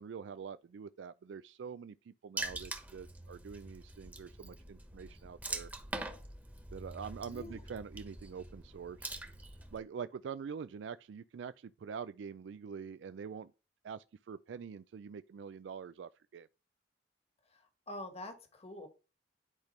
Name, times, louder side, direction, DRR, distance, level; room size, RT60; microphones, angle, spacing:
voice 1, 0.0-5.7 6.7-9.2 9.7-13.5 13.8-16.5, right 6 dB, 75° right, 0.3 m, -45 dB
Water / Splash splatter, 2.4-9.8, right 2 dB, 10° right, 1.3 m, -44 dB
voice 2, 7.3-7.6 17.5-18.9, left 1 dB, 35° left, 1.4 m, -46 dB
10.5 x 5.1 x 3.2 m
head